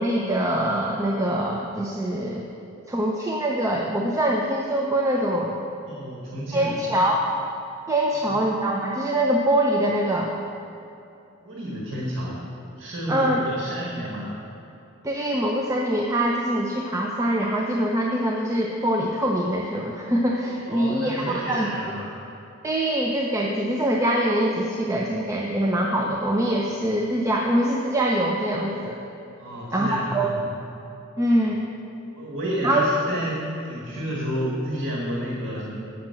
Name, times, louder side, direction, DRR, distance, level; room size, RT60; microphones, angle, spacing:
voice 1, 0.0-2.4 2.9-5.6 6.5-7.2 7.9-10.3 13.1-13.4 15.0-21.7 22.6-29.0 29.7-30.3 31.2-31.6 32.6-32.9, right 1 dB, 15° right, -2 dB, 0.5 m, -23 dB
voice 2, 5.9-6.7 8.3-8.4 11.4-12.4 12.8-14.3 20.7-22.1 29.4-30.5 32.1-35.7, equal, 65° right, -5 dB, 1.6 m, -31 dB
7.4 x 5.8 x 7.6 m, 2.8 s
head